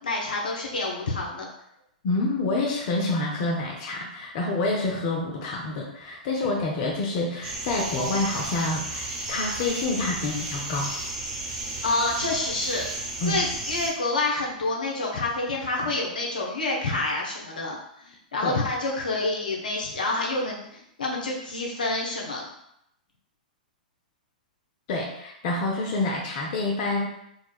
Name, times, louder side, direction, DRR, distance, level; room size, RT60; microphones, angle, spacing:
voice 1, 0.0-1.5 11.8-12.8 13.2-22.5, left 2 dB, 80° left, -2 dB, 0.9 m, -28 dB
voice 2, 2.0-10.9 13.2-13.4 18.4-18.6 24.9-27.1, left 2 dB, 50° left, -1 dB, 0.6 m, -27 dB
sound 1, 7.4-13.9, right 2 dB, 45° right, 1.3 m, -33 dB
4.6 x 2.2 x 2.3 m, 0.76 s
hypercardioid pair, 110°, 5 cm